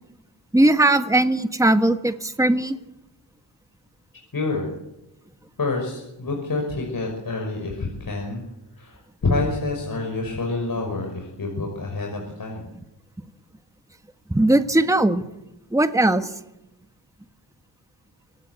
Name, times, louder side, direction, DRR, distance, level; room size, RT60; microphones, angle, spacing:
voice 1, 0.5-2.8 14.3-15.2 15.7-16.3, right 1 dB, 5° right, 8 dB, 1.4 m, -19 dB
voice 2, 4.3-4.7 5.6-8.4 8.8-12.7, left 3 dB, 50° left, 1 dB, 5.9 m, -27 dB
25.0 x 18.0 x 8.2 m, 0.88 s
wide cardioid pair, 100°, 43 cm